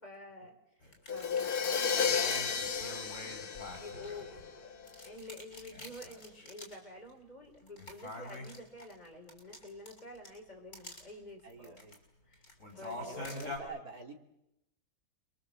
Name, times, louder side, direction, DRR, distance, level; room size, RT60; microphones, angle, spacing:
voice 1, 0.0-3.0 3.7-4.7 5.0-11.8 12.3-13.5, left 1 dB, 25° left, 1 dB, 5.0 m, -49 dB
sound 1, 0.8-4.5 4.9-6.8 7.1-7.2 7.7-10.4 10.7-11.0 11.5-12.0 12.3-13.6, left 2 dB, 50° left, 6.4 m, -45 dB
Crash cymbal, 1.1-4.8, left 6 dB, 70° left, 1.8 m, -33 dB
voice 2, 11.4-12.0 12.9-14.1, right 3 dB, 65° right, 3 dB, 3.2 m, -47 dB
28.5 x 23.0 x 8.0 m, 0.87 s
omnidirectional pair, 1.7 m